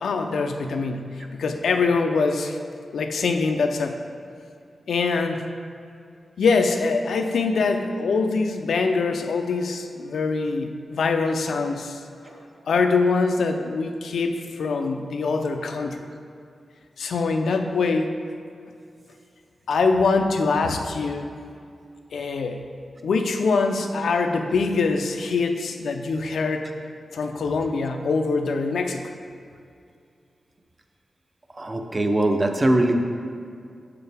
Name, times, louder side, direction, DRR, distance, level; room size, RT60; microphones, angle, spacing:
voice 1, 0.0-2.6 2.9-3.9 4.9-5.4 6.4-12.0 12.7-16.0 17.0-18.1 19.7-21.3 22.1-22.6 23.0-26.6 27.1-29.1, left 4 dB, 90° left, 5 dB, 0.5 m, -23 dB
voice 2, 31.5-33.0, right 1 dB, 25° right, 5 dB, 0.6 m, -22 dB
7.7 x 6.7 x 3.4 m, 2.4 s
wide cardioid pair, 125°, 0 cm